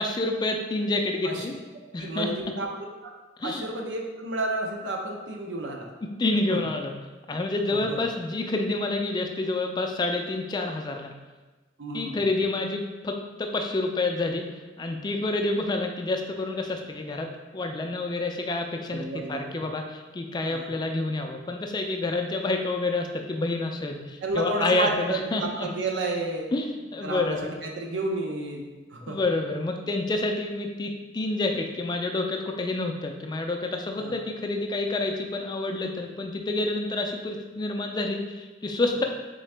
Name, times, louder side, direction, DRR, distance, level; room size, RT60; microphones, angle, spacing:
voice 1, 0.0-1.6 1.9-2.3 3.4-3.6 6.0-6.9 7.3-11.1 11.9-25.7 26.5-27.5 29.1-39.0, left 2 dB, 25° left, 3 dB, 0.3 m, -28 dB
voice 2, 1.7-2.7 3.0-3.1 3.4-5.9 6.5-6.6 7.7-8.0 11.8-12.2 18.9-19.7 20.4-20.8 24.2-26.5 27.0-29.2 34.0-34.2, right 2 dB, 80° right, 1 dB, 0.6 m, -31 dB
3.8 x 3.5 x 3.3 m, 1.2 s
head